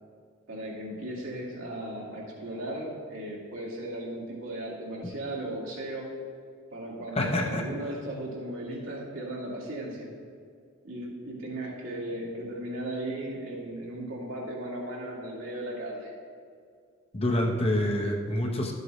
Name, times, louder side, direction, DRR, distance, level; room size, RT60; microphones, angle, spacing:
voice 1, 0.5-6.1 6.7-10.1 10.8-16.1, right 1 dB, 80° right, -4 dB, 2.1 m, -36 dB
voice 2, 7.1-7.6 17.1-18.7, left 1 dB, 30° left, 1 dB, 0.9 m, -27 dB
12.5 x 7.8 x 3.1 m, 2.1 s
head